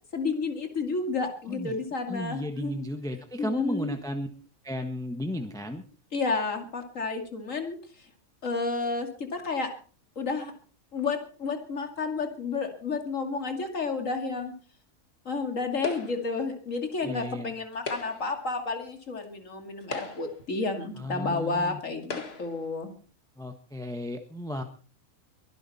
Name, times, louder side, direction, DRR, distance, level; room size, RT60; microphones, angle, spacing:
voice 1, 0.1-2.8 3.4-3.9 6.1-7.8 8.4-9.7 10.2-10.5 10.9-14.5 15.2-22.9, left 3 dB, 65° left, 5 dB, 2.9 m, -31 dB
voice 2, 2.1-4.3 4.6-5.8 17.0-17.5 21.0-21.8 23.4-24.6, left 1 dB, 5° left, 6 dB, 1.3 m, -34 dB
sound 1, 15.8-16.4 17.7-18.4 19.2-19.3 19.8-20.5 21.4-21.5 22.0-22.6, left 3 dB, 45° left, 2.1 m, -38 dB
23.5 x 11.5 x 4.3 m, 0.39 s
omnidirectional pair, 1.4 m